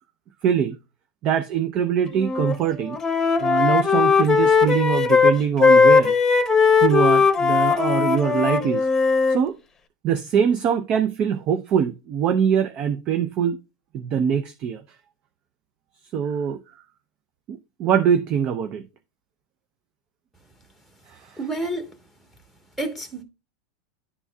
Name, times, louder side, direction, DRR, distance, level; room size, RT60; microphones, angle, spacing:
voice 1, 0.4-0.8 1.2-3.0 3.4-6.1 6.8-8.9 9.3-9.5 10.0-13.6 13.9-14.8 16.1-16.6 17.5-18.9 21.1-21.4, right 8 dB, 40° right, 0.6 m, -23 dB
Wind instrument woodwind instrument, 2.1-2.6 2.9-9.4, left 5 dB, 15° left, 0.9 m, -18 dB
voice 2, 21.4-21.9 22.8-23.2, right 2 dB, 10° right, 1.2 m, -29 dB
11.0 x 4.0 x 2.3 m
supercardioid pair, 140°, 3 cm